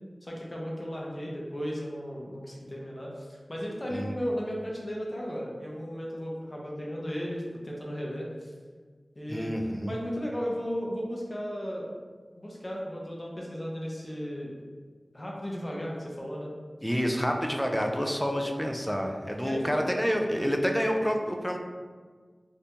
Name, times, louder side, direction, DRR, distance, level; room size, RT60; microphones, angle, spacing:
voice 1, 0.2-8.5 9.2-9.5 9.9-11.9 12.4-14.5 15.1-16.5 19.4-19.8, equal, 35° left, -3 dB, 0.7 m, -35 dB
voice 2, 9.3-9.9 16.8-21.6, equal, 5° left, 2 dB, 0.4 m, -28 dB
3.4 x 2.6 x 2.8 m, 1.5 s
wide cardioid pair, 60°, 0 cm